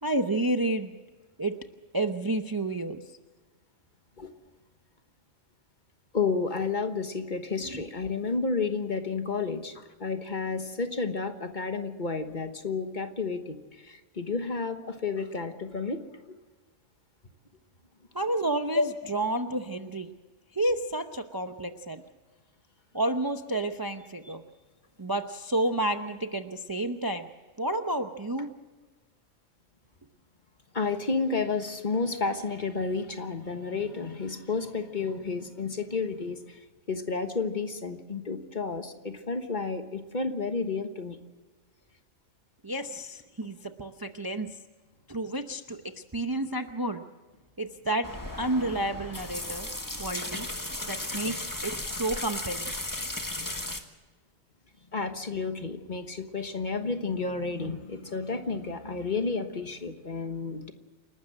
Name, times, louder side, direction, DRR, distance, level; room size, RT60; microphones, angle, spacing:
voice 1, 0.0-0.9 1.4-1.5 1.9-3.0 7.7-7.8 18.1-20.1 20.5-22.0 22.9-24.4 25.0-27.3 27.6-28.5 42.6-44.5 45.1-47.0 47.6-48.1 48.4-49.7 50.0-50.5 50.8-52.7, right 1 dB, 20° right, 7 dB, 0.6 m, -30 dB
voice 2, 6.1-16.0 16.3-16.4 18.7-18.9 30.7-36.6 36.9-41.2 54.9-60.7, left 4 dB, 40° left, 7 dB, 1.4 m, -31 dB
sound 1, 48.0-53.8, left 1 dB, 15° left, 1.5 m, -35 dB
28.5 x 12.5 x 7.7 m, 1.3 s
omnidirectional pair, 1.3 m